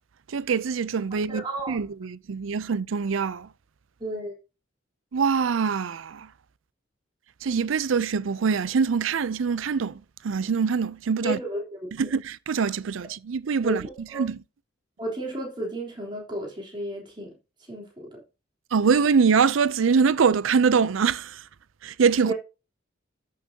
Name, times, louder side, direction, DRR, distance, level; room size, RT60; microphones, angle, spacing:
voice 1, 0.3-3.5 5.1-6.3 7.4-11.4 11.9-13.8 14.2-14.4 18.7-21.4 21.8-22.3, right 5 dB, 85° right, 0.5 m, -24 dB
voice 2, 1.3-1.8 4.0-4.3 11.2-11.8 13.6-14.2 15.0-17.3 17.7-18.2 22.2-22.3, right 1 dB, 25° right, 3.4 m, -33 dB
13.5 x 6.5 x 2.8 m
head